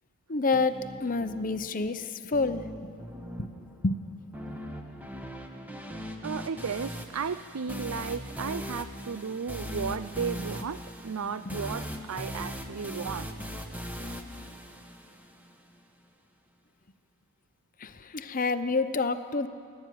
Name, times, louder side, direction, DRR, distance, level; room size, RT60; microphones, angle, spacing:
voice 1, 0.3-0.7 1.0-2.0 2.3-2.6 3.8-4.0 17.8-19.5, left 3 dB, 40° left, 10 dB, 0.7 m, -27 dB
sound 1, 0.5-15.5, equal, 10° right, 1.4 m, -40 dB
voice 2, 6.2-13.3, right 6 dB, 85° right, 13 dB, 0.5 m, -34 dB
29.0 x 11.5 x 9.3 m, 2.3 s
head